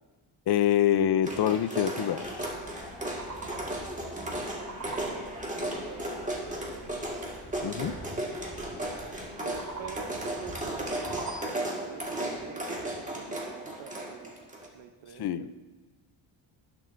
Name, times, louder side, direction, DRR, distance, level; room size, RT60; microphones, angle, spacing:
voice 1, 0.5-2.5 7.6-7.9 15.2-15.5, left 11 dB, 55° left, 13 dB, 0.6 m, -26 dB
sound 1, 1.2-14.7, right 1 dB, 15° right, 1.7 m, -35 dB
sound 2, 2.2-10.9, equal, ahead, 2.0 m, -51 dB
sound 3, 2.9-3.9 4.2-5.4 9.3-10.2 10.7-11.8, right 3 dB, 40° right, 2.7 m, -42 dB
voice 2, 5.1-7.2 9.4-14.3 14.7-15.5, right 8 dB, 75° right, 8 dB, 0.8 m, -46 dB
18.5 x 6.8 x 2.6 m, 1.3 s
cardioid pair, 105°, 47 cm